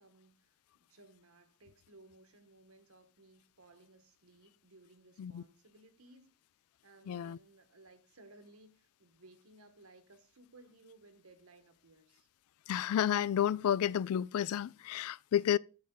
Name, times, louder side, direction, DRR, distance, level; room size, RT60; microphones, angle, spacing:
voice 1, 0.0-6.4 6.8-12.3, right 2 dB, 90° right, 1.5 m, -60 dB
voice 2, 7.1-7.4 12.7-15.6, left 10 dB, 85° left, 0.3 m, -31 dB
8.7 x 7.7 x 3.9 m
head